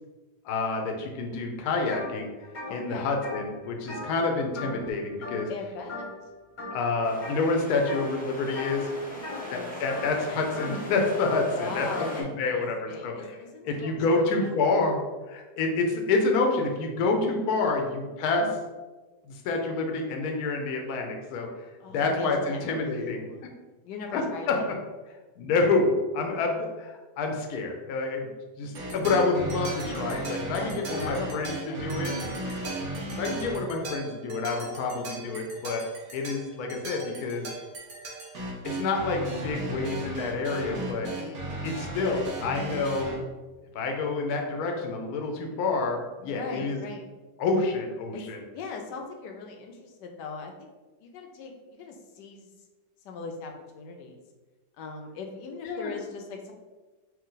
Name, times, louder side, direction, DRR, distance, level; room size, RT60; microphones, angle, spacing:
voice 1, 0.4-2.3 2.7-5.5 6.7-8.9 9.5-13.1 13.7-15.0 15.3-18.5 19.3-21.5 21.9-23.2 24.1-24.6 25.4-28.3 28.6-31.5 31.8-32.1 33.2-35.9 36.1-37.5 38.6-41.1 41.6-43.1 43.7-46.8 47.4-48.4 55.6-55.9, left 3 dB, 70° left, 2 dB, 1.1 m, -28 dB
sound 1, 1.9-2.1 2.4-4.9 5.2-5.6 5.9-6.3 6.6-7.4 7.9-8.2 8.5-12.1, left 2 dB, 35° left, 1.0 m, -39 dB
voice 2, 2.7-3.2 5.5-6.1 9.1-10.2 11.5-14.8 17.6-17.9 21.8-23.5 23.8-24.6 26.3-26.5 30.5-32.2 40.9-41.6 46.2-47.0 48.1-48.2 48.5-50.7 51.0-52.5 53.0-54.2 54.8-56.5, left 4 dB, 85° left, 3 dB, 1.3 m, -40 dB
sound 2, 7.0-12.2, equal, 10° left, 0.6 m, -40 dB
sound 3, 28.7-43.2, right 1 dB, 60° right, 1.4 m, -36 dB
4.5 x 2.6 x 3.8 m, 1.2 s
omnidirectional pair, 1.8 m